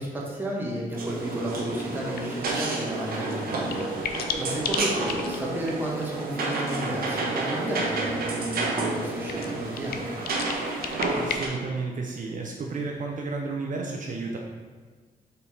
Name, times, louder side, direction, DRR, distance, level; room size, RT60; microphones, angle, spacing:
voice 1, 0.0-4.0 4.4-10.1, right 1 dB, 15° right, -4 dB, 1.3 m, -32 dB
sound 1, 1.0-11.5, right 3 dB, 75° right, 1.1 m, -30 dB
sound 2, 1.5-11.4, left 6 dB, 85° left, 0.5 m, -38 dB
sound 3, 4.5-7.7, equal, 30° left, 1.2 m, -42 dB
voice 2, 11.1-14.4, right 3 dB, 60° right, 0 dB, 0.7 m, -32 dB
5.4 x 4.2 x 4.2 m, 1.5 s
wide cardioid pair, 135°, 15 cm